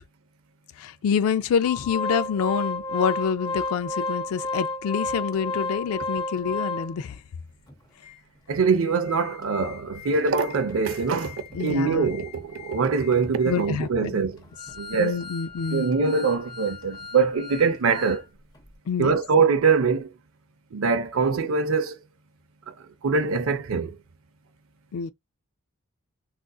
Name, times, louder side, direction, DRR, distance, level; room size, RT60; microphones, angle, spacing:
voice 1, 0.8-7.2 11.5-12.1 13.4-14.2 15.0-15.9 18.9-19.1 24.9-25.1, left 6 dB, 75° left, 0.3 m, -27 dB
Organ, 1.6-7.2 7.7-7.8 8.0-8.2 8.6-18.2 18.5-18.7, left 2 dB, 15° left, 0.6 m, -34 dB
voice 2, 8.5-14.4 14.8-15.2 15.7-18.2 19.0-20.1 20.7-22.0 22.7-22.8 23.0-24.0, right 5 dB, 65° right, 0.5 m, -23 dB
3.7 x 2.5 x 2.3 m
head